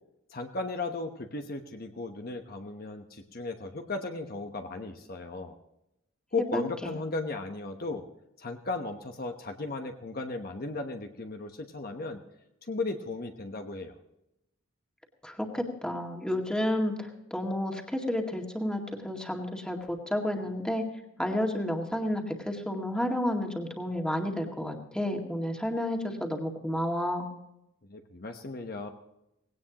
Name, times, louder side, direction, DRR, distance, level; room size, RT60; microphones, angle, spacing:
voice 1, 0.3-5.6 6.3-8.0 8.4-12.2 12.7-13.9 27.9-28.9, left 3 dB, 45° left, 4 dB, 1.1 m, -36 dB
voice 2, 15.2-20.9 21.2-27.3, left 1 dB, 5° left, 1 dB, 2.0 m, -31 dB
18.5 x 17.5 x 3.0 m, 0.86 s
head